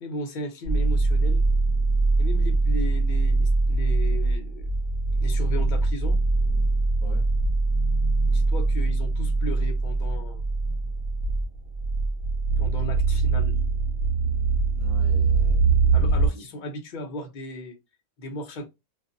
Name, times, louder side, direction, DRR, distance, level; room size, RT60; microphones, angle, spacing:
voice 1, 0.0-1.5 2.2-4.7 5.2-6.3 8.3-10.4 12.6-13.6 15.9-17.8 18.2-18.7, left 1 dB, 60° left, 0.5 m, -36 dB
sound 1, 0.7-16.3, right 3 dB, 55° right, 1.2 m, -23 dB
voice 2, 14.8-16.6, right 1 dB, 10° right, 1.1 m, -45 dB
2.5 x 2.5 x 2.5 m
omnidirectional pair, 1.6 m